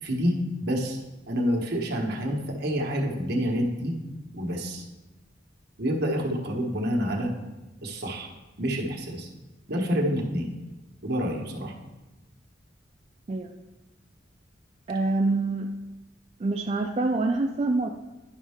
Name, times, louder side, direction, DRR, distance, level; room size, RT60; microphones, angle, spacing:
voice 1, 0.0-1.0 1.3-4.0 4.3-4.8 5.8-7.3 7.8-8.3 8.6-9.3 9.7-10.5 11.0-11.7, equal, 60° right, 1 dB, 1.2 m, -28 dB
voice 2, 14.9-15.7 16.4-17.9, right 2 dB, 35° right, 3 dB, 0.4 m, -26 dB
10.5 x 5.4 x 3.5 m, 1.1 s
head